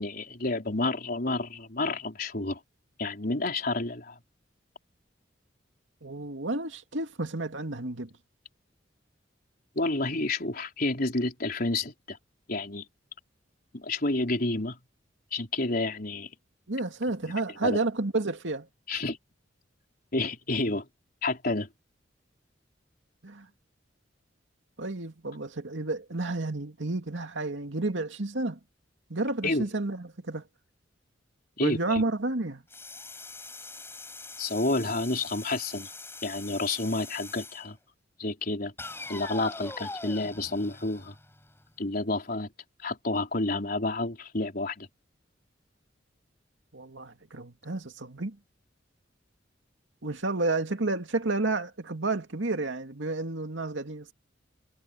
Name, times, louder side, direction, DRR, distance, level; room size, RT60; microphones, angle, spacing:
voice 1, 0.0-2.6 3.0-4.2 9.7-12.2 12.5-12.8 13.7-14.8 15.3-16.3 17.2-17.3 17.6-17.8 18.9-19.2 20.1-20.9 21.2-21.7 29.4-29.7 31.6-32.0 34.4-35.9 36.2-37.8 38.2-38.7 39.1-41.1 41.8-42.5 42.8-44.9, left 2 dB, 55° left, 4.5 m, -30 dB
voice 2, 6.0-8.1 16.7-18.7 23.2-23.5 24.8-28.6 29.1-30.4 31.6-32.6 46.7-48.4 50.0-54.1, right 2 dB, 90° right, 2.3 m, -31 dB
sound 1, 32.7-37.7 38.8-41.7, left 3 dB, 15° left, 7.5 m, -43 dB
head